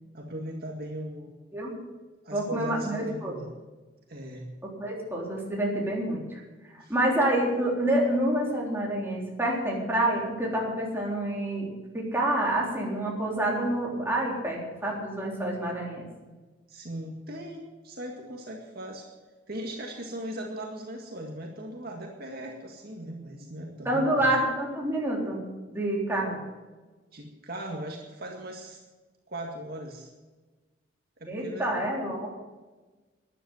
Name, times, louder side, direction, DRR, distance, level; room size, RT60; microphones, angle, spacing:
voice 1, 0.1-1.3 2.2-3.5 4.1-4.5 6.8-6.9 16.7-19.1 19.5-24.3 27.1-28.8 29.3-30.1 31.2-31.7, right 1 dB, 55° right, 0 dB, 2.0 m, -38 dB
voice 2, 2.3-3.3 4.8-6.4 6.7-16.0 23.9-25.4 25.7-26.4 31.3-32.3, right 1 dB, 10° right, -4 dB, 3.7 m, -28 dB
13.0 x 10.5 x 7.8 m, 1.3 s
head